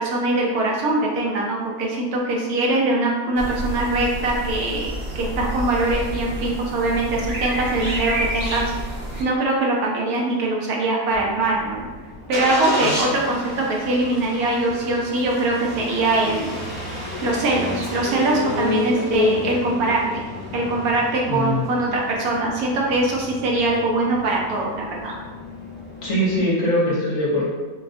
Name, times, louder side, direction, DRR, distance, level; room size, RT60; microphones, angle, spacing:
voice 1, 0.0-8.7 9.2-11.9 12.3-16.5 17.2-20.2 20.5-25.2, right 2 dB, 75° right, -2 dB, 1.0 m, -22 dB
sound 1, 3.4-9.2, equal, 90° right, 0.5 m, -29 dB
Engine starting, 11.1-26.4, left 2 dB, 15° left, 0.4 m, -31 dB
voice 2, 21.3-21.8 26.0-27.5, equal, 55° left, -7 dB, 1.1 m, -22 dB
4.1 x 2.2 x 2.5 m, 1.3 s
omnidirectional pair, 1.7 m